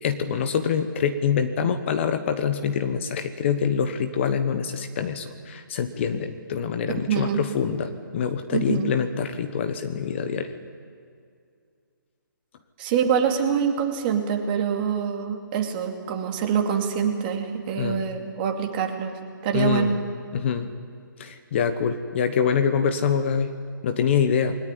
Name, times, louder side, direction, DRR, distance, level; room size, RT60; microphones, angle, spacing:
voice 1, 0.0-10.5 17.7-18.0 19.5-20.0 20.3-20.7 21.2-23.5 23.8-24.6, left 7 dB, 35° left, 9 dB, 1.3 m, -25 dB
voice 2, 7.1-7.4 8.5-8.9 12.8-19.1 19.4-20.0, right 7 dB, 25° right, 3 dB, 2.5 m, -25 dB
22.0 x 18.5 x 10.0 m, 2.2 s
hypercardioid pair, 160°, 11 cm